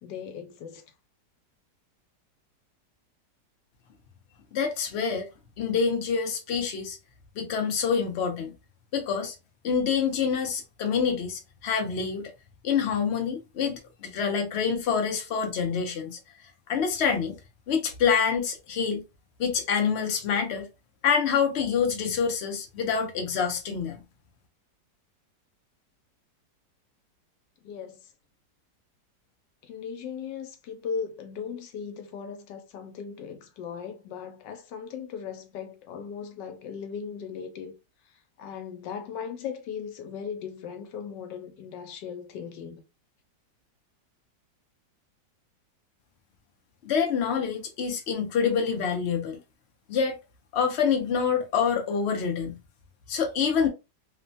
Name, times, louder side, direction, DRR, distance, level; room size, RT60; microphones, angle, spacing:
voice 1, 0.0-0.8 27.6-28.1 29.6-37.7 38.4-42.8, left 6 dB, 90° left, 1.3 m, -38 dB
voice 2, 4.5-5.3 5.6-7.0 7.4-8.5 8.9-9.4 9.6-12.2 12.6-16.2 16.7-17.4 17.7-19.0 19.4-20.7 21.0-24.0 46.8-49.4 49.9-50.2 50.5-52.6 53.1-53.7, left 6 dB, 70° left, 0.6 m, -26 dB
3.0 x 2.1 x 2.5 m
omnidirectional pair, 1.9 m